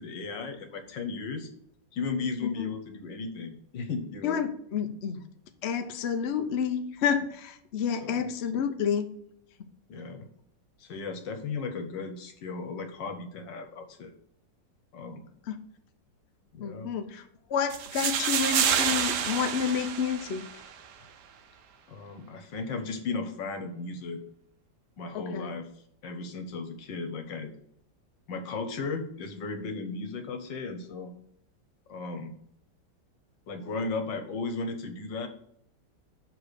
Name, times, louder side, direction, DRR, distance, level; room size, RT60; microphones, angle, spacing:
voice 1, 0.0-1.5 1.9-4.4 7.9-8.3 9.9-10.3 10.8-14.1 14.9-15.2 16.5-16.9 21.9-24.2 25.0-25.7 26.0-27.5 28.3-31.1 31.9-32.3 33.5-35.3, left 4 dB, 75° left, 6 dB, 1.7 m, -35 dB
voice 2, 4.2-5.2 5.6-9.1 15.5-15.6 16.6-17.2 17.5-20.5 25.1-25.5, left 7 dB, 60° left, 7 dB, 0.7 m, -29 dB
sound 1, 17.7-20.7, right 8 dB, 70° right, 1.2 m, -28 dB
6.9 x 3.8 x 6.5 m, 0.69 s
omnidirectional pair, 2.0 m